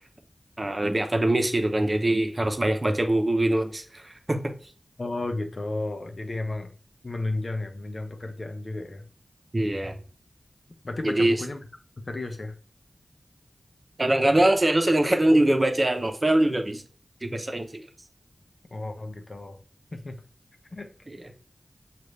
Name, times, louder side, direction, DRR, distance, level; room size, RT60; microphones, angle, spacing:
voice 1, 0.6-4.5 9.5-10.0 11.0-11.4 14.0-16.8 17.2-17.8 21.1-21.3, right 1 dB, 40° right, 0.8 m, -23 dB
voice 2, 5.0-6.7 7.0-9.1 10.8-11.6 12.1-12.6 18.7-19.6 19.9-20.2 20.7-20.9, left 2 dB, 60° left, 0.7 m, -33 dB
6.5 x 2.5 x 3.2 m
wide cardioid pair, 50°, 0 cm